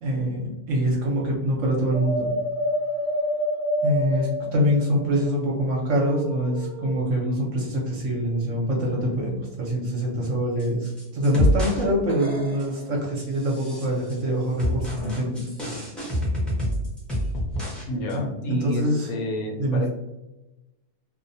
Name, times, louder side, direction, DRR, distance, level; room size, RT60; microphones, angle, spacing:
voice 1, 0.0-2.3 3.8-9.3 9.6-15.5 18.1-19.1 19.6-19.8, equal, 60° right, -3 dB, 0.9 m, -24 dB
sound 1, 1.9-6.9, equal, 50° left, 0.6 m, -28 dB
sound 2, 10.6-11.8 12.1-12.8 13.3-14.2 14.6-17.8 18.1-18.2, equal, ahead, 0.5 m, -27 dB
voice 2, 17.9-19.9, left 1 dB, 70° left, 1 dB, 1.0 m, -29 dB
2.6 x 2.1 x 2.6 m, 1.0 s
omnidirectional pair, 1.6 m